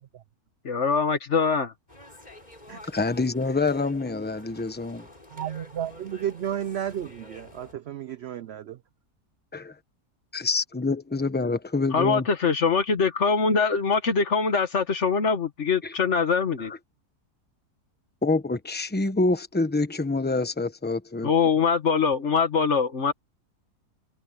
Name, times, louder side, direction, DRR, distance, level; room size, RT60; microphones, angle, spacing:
voice 1, 0.6-1.7 11.9-16.7 21.2-23.1, left 5 dB, 50° left, 1.6 m, -23 dB
sound 1, 1.9-7.7, left 1 dB, 25° left, 5.5 m, -49 dB
voice 2, 2.9-5.1 9.5-9.7 10.3-12.3 15.8-15.9 18.2-21.3, left 3 dB, 10° left, 0.9 m, -26 dB
voice 3, 5.3-8.8, right 10 dB, 70° right, 0.6 m, -33 dB
omnidirectional pair, 1.7 m